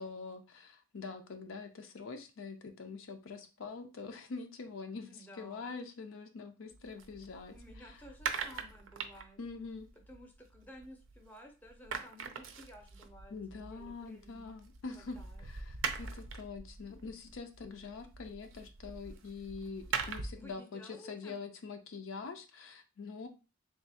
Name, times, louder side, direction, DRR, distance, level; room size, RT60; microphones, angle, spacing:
voice 1, 0.0-8.0 9.4-9.9 13.3-23.3, left 4 dB, 65° left, 6 dB, 0.5 m, -45 dB
voice 2, 5.1-5.7 7.5-9.4 10.1-14.6 14.9-15.5 20.4-21.4, equal, 10° left, 3 dB, 0.6 m, -54 dB
sound 1, 6.7-11.4 11.6-20.5, right 6 dB, 65° right, 0.5 m, -43 dB
3.4 x 2.3 x 4.1 m, 0.32 s
head